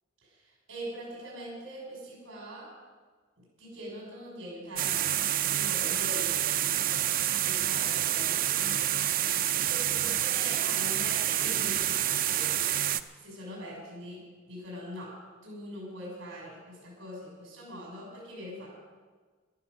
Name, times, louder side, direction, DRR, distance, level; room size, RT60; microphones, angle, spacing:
voice 1, 0.7-2.7 3.6-7.0 7.4-9.0 9.5-12.0 12.2-12.6 13.2-14.2 14.5-15.1 15.4-18.7, equal, 90° right, -4 dB, 6.2 m, -42 dB
sound 1, 4.8-13.0, right 12 dB, 45° right, 0.5 m, -28 dB
14.0 x 12.5 x 6.4 m, 1.5 s
head